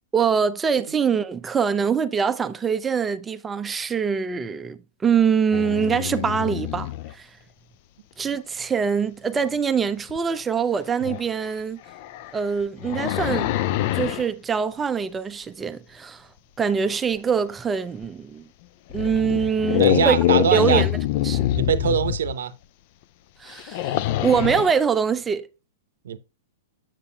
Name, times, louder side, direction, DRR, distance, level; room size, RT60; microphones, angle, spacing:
voice 1, 0.1-7.3 8.2-11.8 12.3-13.5 13.9-16.3 16.6-18.5 18.9-20.2 20.5-21.0 21.2-21.5 23.4-25.5, right 6 dB, 15° right, 0.5 m, -24 dB
sound 1, 5.5-7.1 10.1-10.2 11.0-11.2 11.9-14.3 18.0-18.1 18.9-22.3 23.5-24.8, left 14 dB, 50° left, 0.3 m, -25 dB
voice 2, 19.8-20.9 21.5-22.5 26.0-26.2, right 8 dB, 75° right, 0.7 m, -22 dB
7.4 x 6.8 x 2.3 m
hypercardioid pair, 115°, 0 cm